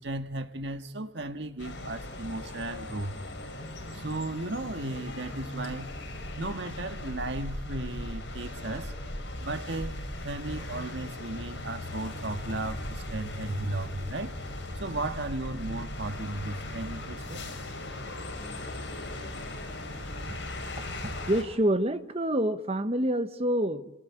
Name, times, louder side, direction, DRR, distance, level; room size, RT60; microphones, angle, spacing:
voice 1, 0.0-3.1 3.9-6.0 6.4-8.9 9.4-9.9 10.2-14.4 14.8-17.5, right 2 dB, 65° right, 1.7 m, -35 dB
sound 1, 1.6-21.4, left 1 dB, 80° left, 5.6 m, -38 dB
voice 2, 21.0-23.9, right 1 dB, 30° right, 1.2 m, -27 dB
28.5 x 18.5 x 9.9 m
head